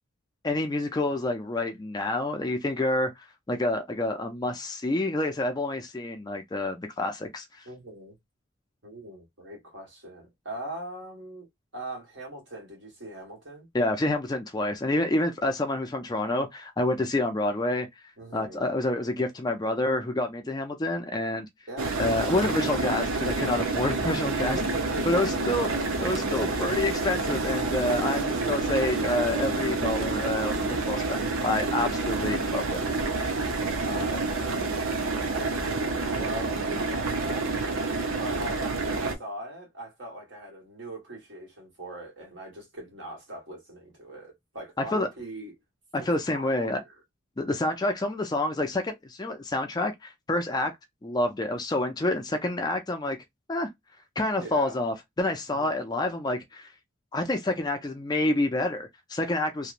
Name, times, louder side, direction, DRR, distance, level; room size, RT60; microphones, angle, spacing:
voice 1, 0.4-3.1 3.5-7.6 13.7-17.9 18.3-21.5 22.0-24.6 25.1-25.7 26.0-32.8 44.9-45.1 45.9-46.8 47.4-50.7 51.0-53.2 53.5-53.7 54.2-56.7 57.1-59.7, left 2 dB, 20° left, 0.4 m, -28 dB
voice 2, 7.6-8.2 8.8-11.5 11.7-13.7 18.2-18.6 21.7-22.0 24.5-25.4 25.6-25.9 28.0-28.4 33.3-37.5 38.2-45.5 46.3-46.9 54.4-54.8 55.5-55.9, right 1 dB, 60° right, 1.4 m, -40 dB
sound 1, 21.8-39.2, right 3 dB, 80° right, 0.6 m, -28 dB
2.9 x 2.1 x 2.4 m
head